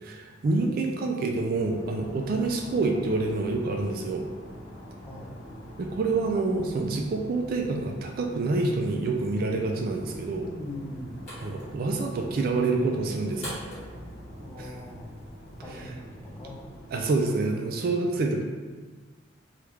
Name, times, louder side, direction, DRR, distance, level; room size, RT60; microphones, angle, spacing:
voice 1, 0.0-4.3 5.8-10.5 11.4-13.6 14.6-14.7 15.7-15.9 16.9-18.4, right 3 dB, 50° right, 2 dB, 0.3 m, -27 dB
sound 1, 1.5-17.1, equal, 80° left, 0.8 m, -45 dB
voice 2, 10.4-11.2 14.4-15.1 15.6-16.6 18.1-18.2, left 1 dB, 10° left, -4 dB, 0.5 m, -41 dB
sound 2, 10.6-15.6, equal, 40° left, 1.4 m, -46 dB
3.3 x 2.4 x 3.1 m, 1.3 s
head